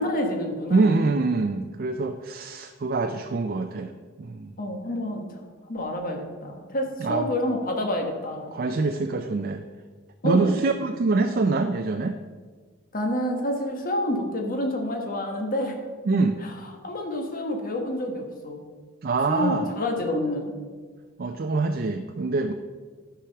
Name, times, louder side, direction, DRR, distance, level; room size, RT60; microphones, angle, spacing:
voice 1, 0.0-0.9 4.6-5.4 5.7-8.5 10.2-10.6 12.9-15.8 16.4-16.5 16.8-18.6 19.3-20.4, left 1 dB, 45° left, 3 dB, 1.3 m, -28 dB
voice 2, 0.7-3.9 4.2-4.5 7.0-7.3 8.5-9.6 10.2-12.2 16.1-16.4 19.0-19.7 21.2-22.5, right 3 dB, 45° right, 6 dB, 0.4 m, -25 dB
10.0 x 4.9 x 5.8 m, 1.5 s
head